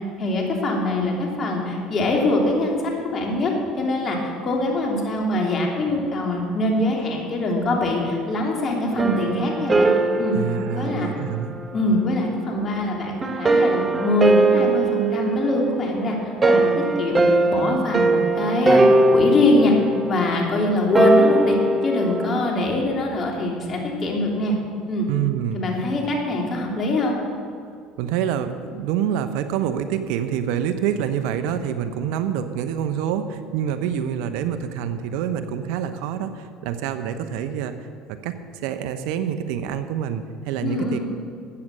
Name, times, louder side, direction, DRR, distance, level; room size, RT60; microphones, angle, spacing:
voice 1, 0.2-4.2 4.4-9.9 10.2-10.4 10.7-11.1 11.7-18.8 19.1-19.7 20.1-21.6 21.8-24.5 24.9-25.1 25.5-27.2 40.6-41.0, left 2 dB, 40° left, 0 dB, 3.2 m, -23 dB
sound 1, 8.9-11.9 13.2-22.4, right 2 dB, 25° right, 1.2 m, -20 dB
voice 2, 10.3-11.5 25.1-25.6 28.0-41.0, right 9 dB, 75° right, 10 dB, 0.8 m, -26 dB
14.5 x 8.8 x 6.6 m, 2.4 s
supercardioid pair, 80°, 0 cm